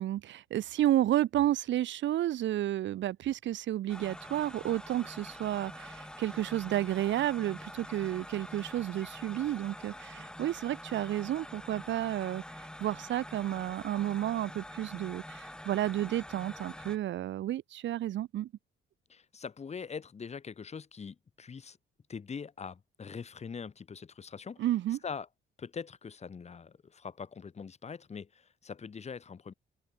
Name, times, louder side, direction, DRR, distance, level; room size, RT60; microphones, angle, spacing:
voice 1, 0.0-18.5 24.6-25.0, right 13 dB, 70° right, 0.8 m, -31 dB
sound 1, 3.9-17.0, left 1 dB, 5° left, 1.0 m, -46 dB
voice 2, 19.1-21.8 22.1-24.6 25.0-25.3 25.6-29.5, left 6 dB, 35° left, 1.2 m, -43 dB
cardioid pair, 90°, 20 cm